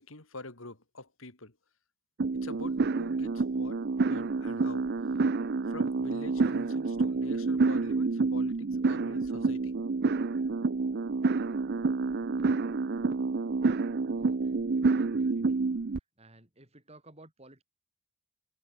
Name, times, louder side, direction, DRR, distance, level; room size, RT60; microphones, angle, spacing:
voice 1, 0.0-1.6 2.4-4.9 5.7-9.7, left 2 dB, 70° left, 3.4 m, -46 dB
sound 1, 2.2-16.0, right 4 dB, 50° right, 0.5 m, -28 dB
voice 2, 13.9-17.6, right 2 dB, 30° right, 5.3 m, -57 dB
head